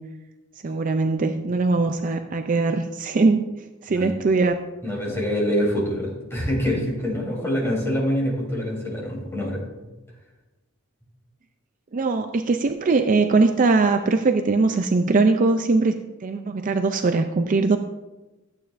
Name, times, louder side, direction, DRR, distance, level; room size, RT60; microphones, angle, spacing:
voice 1, 0.6-3.5 3.8-4.6 11.9-16.0 16.2-17.8, right 3 dB, 40° right, 7 dB, 0.4 m, -21 dB
voice 2, 4.8-9.6, equal, 15° left, -4 dB, 3.5 m, -25 dB
14.0 x 8.6 x 2.6 m, 1.1 s
head